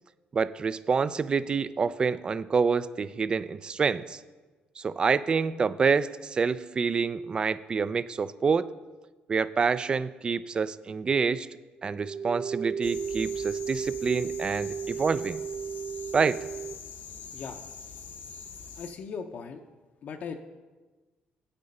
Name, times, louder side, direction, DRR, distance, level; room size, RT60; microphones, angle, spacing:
voice 1, 0.3-4.2 4.8-8.7 9.3-11.5 11.8-15.4 16.1-16.4, right 5 dB, 30° right, 16 dB, 0.3 m, -27 dB
sound 1, 11.8-16.7, right 7 dB, 60° right, 0.7 m, -34 dB
sound 2, 12.8-18.9, left 6 dB, 80° left, 1.0 m, -44 dB
voice 2, 18.8-19.6 20.0-20.3, left 6 dB, 50° left, 5 dB, 0.6 m, -38 dB
8.6 x 8.5 x 5.3 m, 1.3 s
cardioid pair, 135°, 3 cm